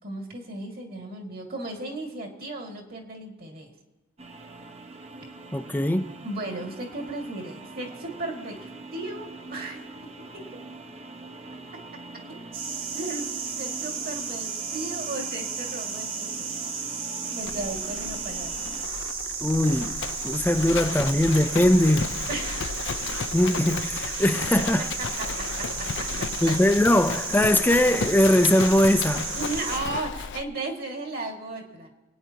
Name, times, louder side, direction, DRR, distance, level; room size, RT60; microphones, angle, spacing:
voice 1, 0.0-3.7 6.2-9.8 10.3-10.5 12.8-16.6 17.3-18.7 22.3-22.9 24.8-26.6 29.4-31.9, right 2 dB, 50° right, 2.2 m, -35 dB
sound 1, 4.2-18.8, right 2 dB, 30° right, 0.8 m, -43 dB
voice 2, 5.5-6.1 19.4-19.9 20.2-22.1 23.3-24.8 26.4-29.3, left 1 dB, 10° left, 0.5 m, -21 dB
sound 2, 12.5-29.8, right 5 dB, 70° right, 1.4 m, -33 dB
Livestock farm animals working animals, 17.4-30.5, left 6 dB, 60° left, 0.5 m, -34 dB
27.0 x 9.4 x 2.9 m
head